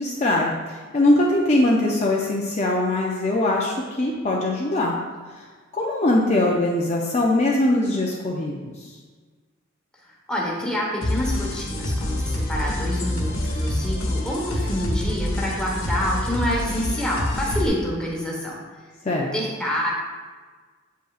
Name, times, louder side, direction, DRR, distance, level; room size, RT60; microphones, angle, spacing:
voice 1, 0.0-5.0 5.4-5.5 5.7-8.9 19.0-19.3, left 1 dB, 35° left, -2 dB, 0.5 m, -22 dB
voice 2, 10.3-18.5 19.3-19.9, equal, 5° left, -4 dB, 1.2 m, -27 dB
sound 1, 11.0-17.7, left 1 dB, 80° left, 1.3 m, -26 dB
7.7 x 5.4 x 2.4 m, 1.4 s
head